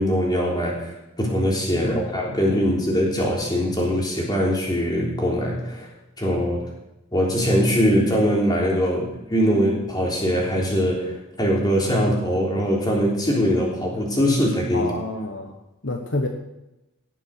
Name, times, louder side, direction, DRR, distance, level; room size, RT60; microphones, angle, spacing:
voice 1, 0.0-5.9 6.2-6.7 7.1-14.9, equal, 20° left, -2 dB, 3.5 m, -22 dB
voice 2, 1.7-2.7 14.7-15.6 15.8-16.3, left 2 dB, 55° left, 4 dB, 1.2 m, -29 dB
18.0 x 7.4 x 6.5 m, 0.94 s
head